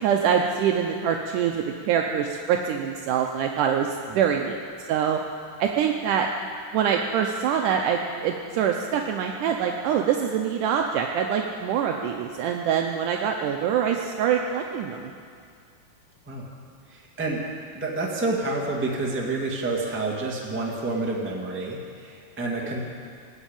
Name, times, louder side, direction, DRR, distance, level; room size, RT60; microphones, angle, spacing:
voice 1, 0.0-4.6 4.9-5.2 5.6-6.3 6.7-15.1, right 8 dB, 75° right, 2 dB, 2.1 m, -24 dB
voice 2, 16.9-17.4 17.7-22.8, right 2 dB, 5° right, -2 dB, 1.0 m, -29 dB
19.5 x 7.3 x 8.8 m, 2.3 s
omnidirectional pair, 3.9 m